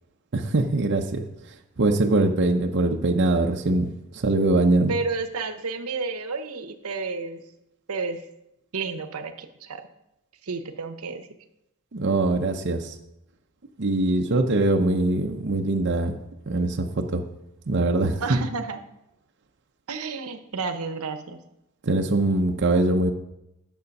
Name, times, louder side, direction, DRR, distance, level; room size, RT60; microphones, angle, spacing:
voice 1, 0.3-1.2 1.8-4.9 11.9-12.9 13.8-16.2 16.5-17.2 17.7-18.4 21.8-23.1, right 2 dB, 55° right, 3 dB, 0.7 m, -22 dB
voice 2, 4.9-7.4 7.9-8.2 8.7-9.8 10.4-11.3 18.2-18.8 19.9-21.4, right 4 dB, 85° right, 8 dB, 0.9 m, -31 dB
9.4 x 6.8 x 5.3 m, 0.87 s
head